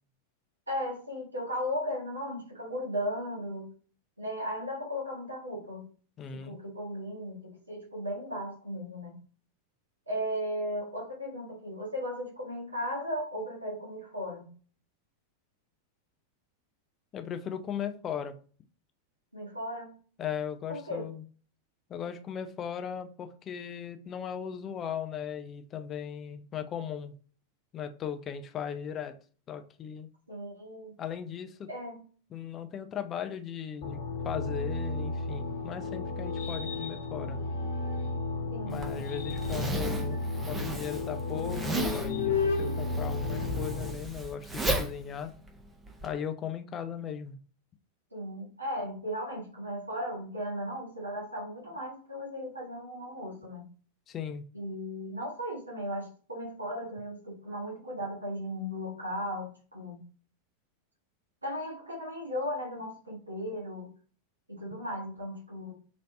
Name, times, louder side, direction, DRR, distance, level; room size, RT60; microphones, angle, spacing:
voice 1, 0.7-3.7 4.2-5.9 6.3-9.1 10.1-14.5 19.3-19.9 20.7-21.1 30.3-31.0 31.7-32.0 38.5-39.0 48.1-53.6 54.5-60.0 61.4-63.9 64.5-65.7, equal, 80° right, 1.5 m, -36 dB
voice 2, 6.2-6.6 17.1-18.4 20.2-21.2 21.9-27.1 27.7-29.2 29.5-30.1 31.0-31.7 32.3-37.5 38.7-40.2 40.5-45.3 46.0-47.4 54.1-54.4, left 8 dB, 30° left, 0.5 m, -37 dB
sound 1, 33.8-43.9, left 3 dB, 50° left, 1.2 m, -34 dB
sound 2, 35.2-38.3 38.8-44.0, left 6 dB, 70° left, 1.2 m, -37 dB
Zipper (clothing), 38.7-46.1, right 1 dB, 15° right, 0.8 m, -35 dB
4.0 x 3.1 x 2.6 m
figure-of-eight pair, 90°, 0 cm